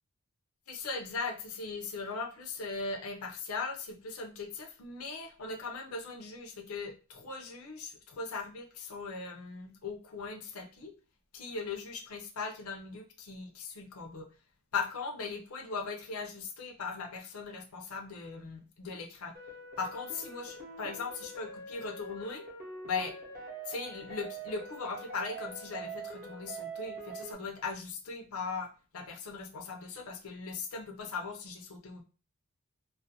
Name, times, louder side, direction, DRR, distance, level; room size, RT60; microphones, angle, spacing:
voice 1, 0.7-10.9 11.3-14.3 14.7-19.3 19.8-22.4 22.9-23.1 23.6-28.7 28.9-32.0, left 4 dB, 75° left, 3 dB, 0.5 m, -39 dB
sound 1, 19.3-27.3, right 3 dB, 40° right, 0.6 m, -44 dB
2.4 x 2.2 x 2.6 m, 0.35 s
head